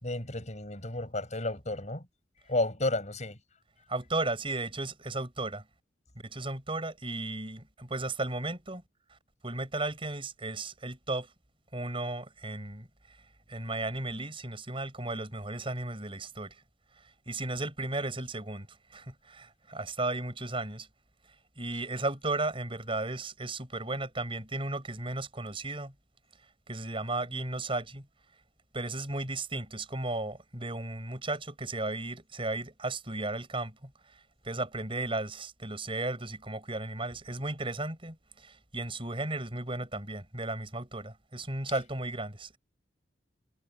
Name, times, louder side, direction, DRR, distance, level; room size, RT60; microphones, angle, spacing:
voice 1, 0.0-2.0 2.5-3.4, left 2 dB, 40° left, 6.3 m, -32 dB
voice 2, 3.9-5.6 6.2-8.8 9.1-9.2 9.4-11.3 11.7-12.9 13.5-16.6 17.3-20.9 21.6-25.9 26.7-28.1 28.7-33.9 34.4-42.6, right 2 dB, 30° right, 7.1 m, -35 dB
head